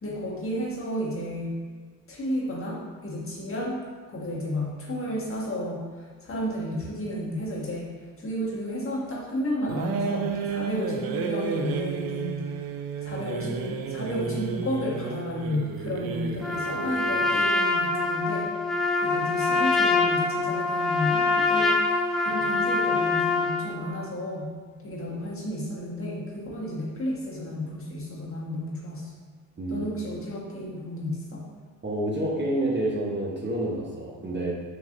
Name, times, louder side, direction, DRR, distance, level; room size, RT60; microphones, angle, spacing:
voice 1, 0.0-1.6 2.1-3.8 4.1-7.9 8.2-18.5 19.0-24.5 24.8-29.1 29.7-31.4, left 1 dB, 35° left, -5 dB, 1.3 m, -32 dB
sound 1, 9.7-17.4, right 6 dB, 70° right, 0.5 m, -32 dB
Trumpet, 16.4-23.7, left 3 dB, ahead, 0.6 m, -24 dB
voice 2, 29.6-29.9 31.8-34.5, right 1 dB, 30° right, -3 dB, 0.9 m, -28 dB
4.0 x 3.0 x 3.7 m, 1.5 s
cardioid pair, 75°, 36 cm